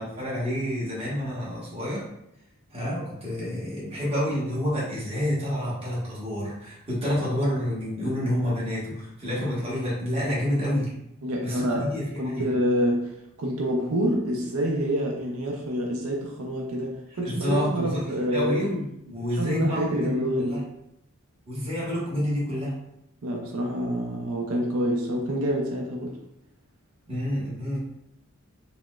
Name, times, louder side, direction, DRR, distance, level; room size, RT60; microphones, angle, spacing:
voice 1, 0.0-2.0 2.7-10.9 11.4-12.5 17.2-18.0 18.3-20.6 21.5-22.7 27.1-27.8, equal, 25° right, -7 dB, 1.0 m, -28 dB
voice 2, 11.2-11.9 12.2-18.6 19.4-20.6 23.2-26.2, equal, 80° right, 0 dB, 0.5 m, -27 dB
3.9 x 2.1 x 2.3 m, 0.82 s
head